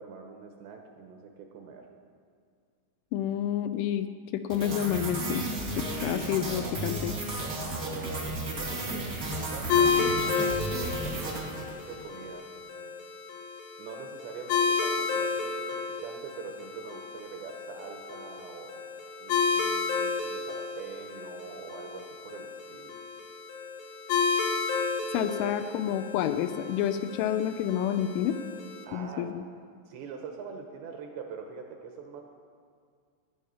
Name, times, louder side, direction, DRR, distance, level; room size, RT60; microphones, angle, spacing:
voice 1, 0.0-1.9 7.7-13.0 13.8-18.9 19.2-23.0 28.9-29.4 29.9-32.2, right 6 dB, 75° right, 3 dB, 2.8 m, -44 dB
voice 2, 3.1-5.5 5.7-7.2 25.1-28.4 28.9-29.4, left 10 dB, 85° left, 9 dB, 2.9 m, -29 dB
sound 1, 4.5-12.1, right 2 dB, 40° right, 1.2 m, -34 dB
sound 2, 9.7-28.8, left 5 dB, 65° left, 3.1 m, -31 dB
17.0 x 9.9 x 5.6 m, 2.1 s
omnidirectional pair, 5.8 m